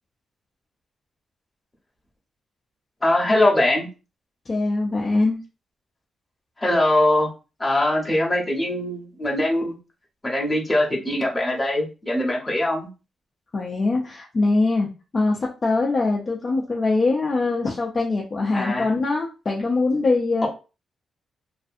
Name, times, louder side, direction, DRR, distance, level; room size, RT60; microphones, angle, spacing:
voice 1, 3.0-3.9 6.6-7.3 7.6-9.7 10.2-12.9 18.5-18.9, left 1 dB, 10° left, -3 dB, 0.8 m, -22 dB
voice 2, 4.5-5.4 13.5-20.5, left 3 dB, 30° left, -2 dB, 0.4 m, -22 dB
2.5 x 2.5 x 2.5 m, 0.31 s
wide cardioid pair, 160°, 0 cm